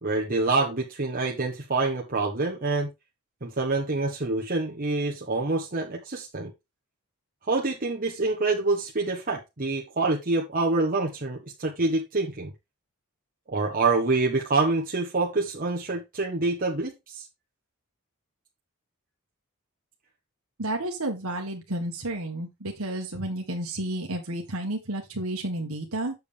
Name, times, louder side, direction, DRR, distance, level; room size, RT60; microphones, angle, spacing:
voice 1, 0.0-2.9 3.4-6.5 7.5-12.5 13.5-17.3, right 3 dB, 40° right, 1.4 m, -26 dB
voice 2, 20.6-26.1, right 1 dB, 70° right, 1.7 m, -31 dB
7.9 x 6.8 x 3.5 m
head